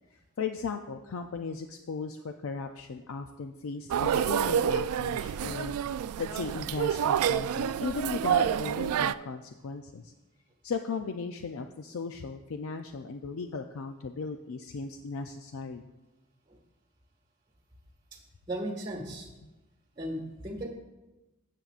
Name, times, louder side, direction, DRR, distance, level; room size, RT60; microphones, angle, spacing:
voice 1, 0.1-5.7 6.2-10.1 10.6-15.8, left 4 dB, 70° left, 6 dB, 0.4 m, -37 dB
sound 1, 3.9-9.1, right 9 dB, 90° right, 0.3 m, -28 dB
voice 2, 18.5-19.3 19.9-20.7, right 1 dB, 20° right, 1 dB, 1.6 m, -36 dB
15.0 x 7.5 x 2.5 m, 1.0 s
head